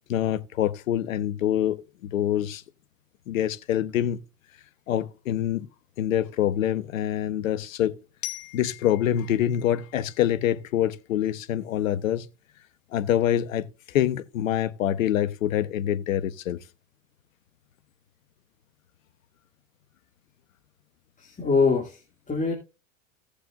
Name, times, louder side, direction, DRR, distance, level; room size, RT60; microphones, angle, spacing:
voice 1, 0.1-2.6 3.3-4.2 4.9-5.7 6.0-8.0 8.5-12.3 12.9-16.6, left 11 dB, 80° left, 1.1 m, -25 dB
Glockenspiel, 8.2-11.1, left 15 dB, 45° left, 2.2 m, -42 dB
voice 2, 21.2-22.5, left 4 dB, 20° left, 2.6 m, -24 dB
17.0 x 6.9 x 2.6 m
hypercardioid pair, 90°, 40 cm